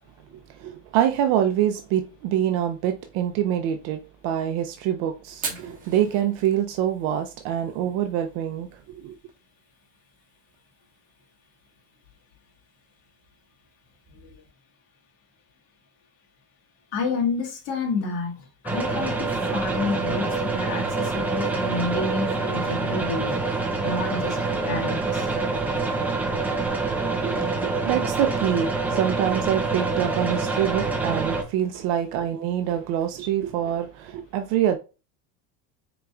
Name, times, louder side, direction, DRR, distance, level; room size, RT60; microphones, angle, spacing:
voice 1, 0.6-9.1 27.0-34.8, right 10 dB, 60° right, 0.5 m, -25 dB
Fire, 5.3-14.5, right 5 dB, 25° right, 1.4 m, -44 dB
voice 2, 16.9-18.3 18.6-23.4 23.8-24.4 24.6-25.3, left 3 dB, 80° left, 1.6 m, -29 dB
sound 1, 18.7-31.4, right 3 dB, 5° right, 0.5 m, -26 dB
4.5 x 3.9 x 2.3 m
cardioid pair, 155°, 33 cm